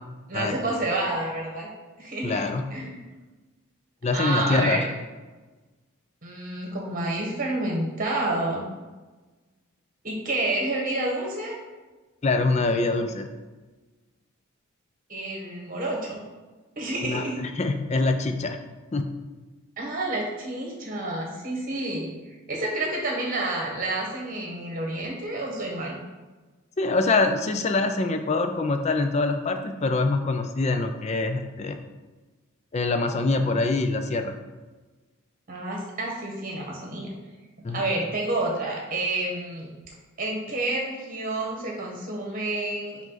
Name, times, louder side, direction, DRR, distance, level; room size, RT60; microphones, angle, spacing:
voice 1, 0.3-1.7 2.0-2.4 2.7-3.0 4.1-4.9 6.2-8.7 10.0-11.6 15.1-16.2 16.8-17.4 19.8-22.1 22.5-26.0 35.5-37.1 37.7-39.7 40.2-43.0, right 2 dB, 40° right, -1 dB, 1.5 m, -29 dB
voice 2, 2.2-2.6 4.0-4.9 12.2-13.3 17.0-18.6 18.9-19.1 26.8-31.8 32.7-34.4 37.6-37.8, left 3 dB, 30° left, 6 dB, 0.4 m, -24 dB
5.2 x 5.0 x 4.0 m, 1.3 s
head